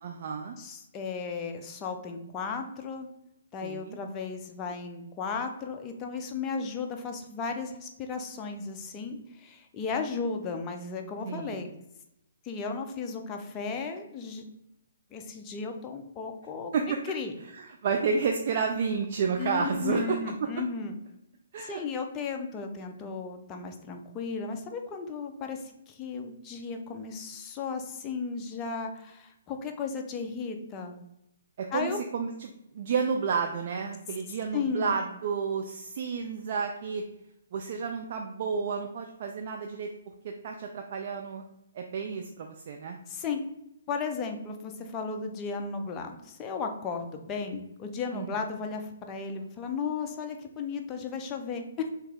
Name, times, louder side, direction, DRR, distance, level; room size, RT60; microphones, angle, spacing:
voice 1, 0.0-0.6 3.6-4.0 11.2-11.6 16.7-17.0 17.6-20.2 21.5-21.8 31.6-37.0 37.5-39.9 40.2-41.4 41.7-43.0 48.1-48.3, right 5 dB, 50° right, 3 dB, 0.3 m, -31 dB
voice 2, 0.6-3.1 3.5-11.7 12.4-14.4 15.1-16.7 17.0-17.3 19.4-21.0 21.6-31.0 31.7-32.1 34.5-34.9 43.1-43.4 43.9-51.9, left 5 dB, 20° left, 4 dB, 0.5 m, -35 dB
3.0 x 2.8 x 3.6 m, 0.84 s
hypercardioid pair, 145°, 0 cm